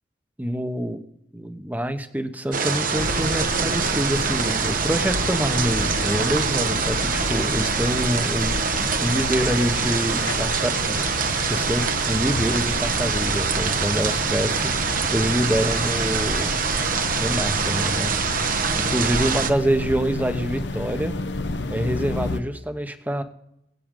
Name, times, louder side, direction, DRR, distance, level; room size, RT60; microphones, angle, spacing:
voice 1, 0.4-1.0 1.3-8.6 9.0-11.0 11.5-14.8 15.1-16.5 17.2-18.1 18.9-21.2 21.7-23.2, equal, 10° right, 8 dB, 1.0 m, -26 dB
sound 1, 2.5-19.5, right 5 dB, 50° right, 1.0 m, -25 dB
sound 2, 3.0-22.4, left 2 dB, 85° left, 0.8 m, -31 dB
22.0 x 8.6 x 3.8 m, 0.81 s
head